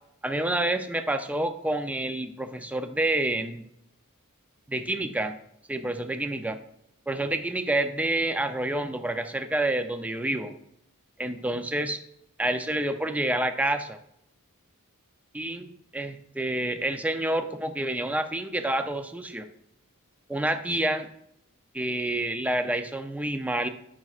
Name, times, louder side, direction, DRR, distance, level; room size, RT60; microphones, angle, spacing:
voice 1, 0.2-3.6 4.7-5.4 5.7-6.6 7.1-10.5 11.2-12.0 12.4-14.0 15.3-15.7 15.9-19.5 20.3-21.1 21.7-23.7, right 1 dB, 5° right, 7 dB, 0.5 m, -28 dB
13.5 x 6.1 x 2.4 m, 0.75 s
head